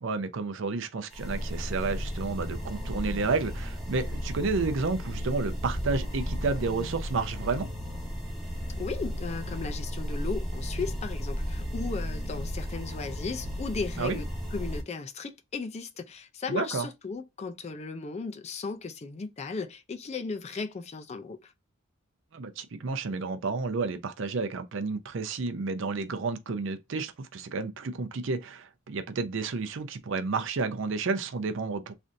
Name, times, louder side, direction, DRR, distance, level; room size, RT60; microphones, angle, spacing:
voice 1, 0.0-7.7 14.0-14.2 16.5-16.9 22.3-31.9, right 4 dB, 65° right, 0.5 m, -31 dB
sound 1, 1.1-14.8, equal, ahead, 0.9 m, -34 dB
voice 2, 8.8-21.5, left 4 dB, 35° left, 0.4 m, -36 dB
3.3 x 2.6 x 2.6 m
head